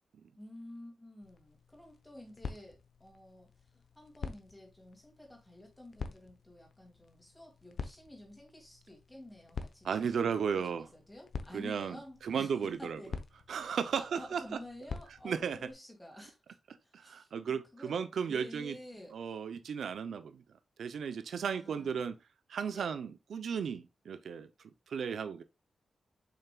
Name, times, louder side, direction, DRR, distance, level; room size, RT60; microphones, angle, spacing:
voice 1, 0.4-13.1 13.5-18.0 18.3-19.2 21.4-22.0 22.7-22.9, left 1 dB, 10° left, 2.4 m, -51 dB
sound 1, 1.2-15.7, left 5 dB, 60° left, 0.8 m, -47 dB
voice 2, 9.8-10.9 11.5-12.0 12.2-13.0 13.5-14.4 15.2-15.6 16.9-18.8 19.1-20.4 20.8-22.1 22.5-24.5 24.9-25.4, right 7 dB, 80° right, 0.6 m, -35 dB
7.2 x 5.7 x 2.3 m
wide cardioid pair, 150°, 0 cm